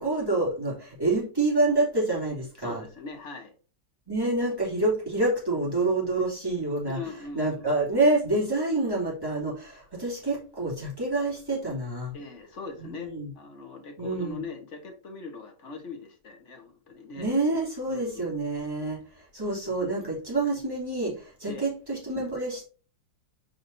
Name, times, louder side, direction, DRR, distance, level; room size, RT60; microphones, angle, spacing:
voice 1, 0.0-2.8 4.1-7.0 7.3-12.1 12.8-13.3 14.0-14.4 17.2-22.7, right 2 dB, 10° right, -5 dB, 2.9 m, -27 dB
voice 2, 2.6-3.5 6.8-7.8 12.1-17.3 17.8-18.2 21.5-21.7, left 4 dB, 40° left, 4 dB, 1.5 m, -41 dB
7.6 x 4.8 x 2.7 m, 0.36 s
omnidirectional pair, 2.0 m